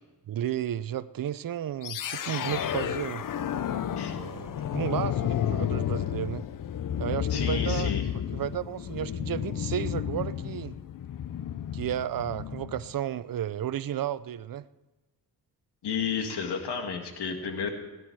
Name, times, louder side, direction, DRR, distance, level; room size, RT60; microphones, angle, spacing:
voice 1, 0.3-3.2 4.1-6.4 7.0-7.9 8.3-10.8 11.7-14.7, right 11 dB, 60° right, 16 dB, 0.7 m, -33 dB
sound 1, 1.8-12.9, left 9 dB, 55° left, 0.7 m, -31 dB
voice 2, 7.3-8.0 15.8-17.7, left 6 dB, 85° left, 5 dB, 2.0 m, -32 dB
17.5 x 11.0 x 4.7 m, 1.2 s
cardioid pair, 85°, 39 cm